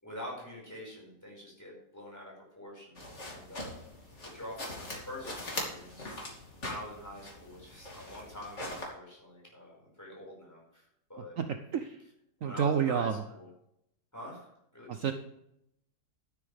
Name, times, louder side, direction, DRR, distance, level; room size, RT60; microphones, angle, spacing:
voice 1, 0.0-3.8 4.2-11.4 12.4-13.5 14.1-15.1, left 1 dB, 10° left, -3 dB, 5.6 m, -46 dB
sound 1, 3.0-8.9, left 1 dB, 45° left, 3.1 m, -41 dB
voice 2, 12.4-13.1 14.9-15.1, right 8 dB, 60° right, 8 dB, 1.0 m, -28 dB
12.5 x 11.0 x 3.5 m, 0.79 s
omnidirectional pair, 1.7 m